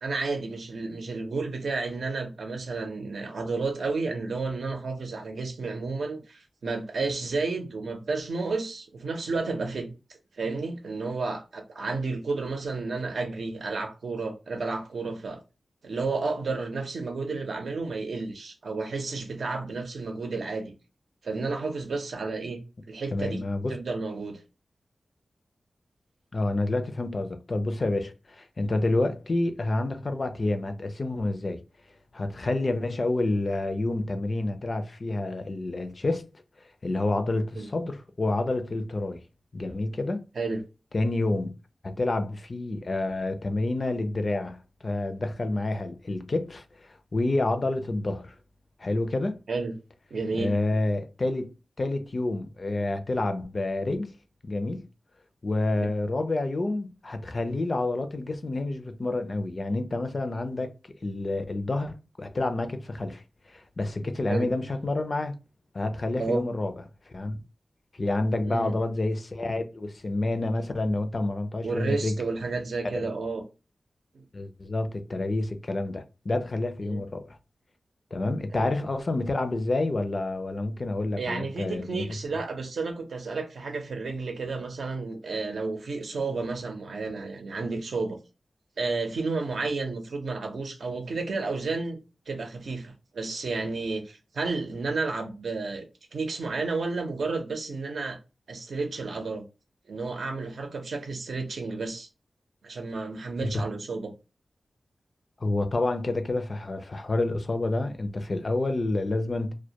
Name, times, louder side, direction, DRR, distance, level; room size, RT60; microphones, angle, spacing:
voice 1, 0.0-9.9 10.4-15.4 15.8-20.7 21.2-22.6 22.9-23.4 23.7-24.4 37.6-37.7 40.4-40.6 49.5-49.7 50.1-50.5 55.8-55.9 64.3-64.5 66.1-66.4 68.3-68.7 71.6-73.4 74.1-74.2 76.8-77.0 78.5-78.7 81.2-88.2 88.8-92.0 92.3-95.8 96.1-98.2 98.5-99.4 99.9-102.1 102.6-104.1, right 3 dB, 80° right, 0.6 m, -31 dB
voice 2, 23.1-23.8 26.3-31.6 32.1-36.3 36.8-39.2 39.5-40.2 40.9-41.5 41.8-48.4 48.8-49.4 50.4-51.5 51.8-54.1 54.4-54.9 55.4-63.2 63.5-65.3 65.7-66.7 67.1-67.4 68.0-72.2 74.3-77.4 78.1-82.0 103.4-103.6 105.4-109.5, left 2 dB, 40° left, 0.4 m, -28 dB
2.2 x 2.1 x 2.7 m
wide cardioid pair, 115°, 0 cm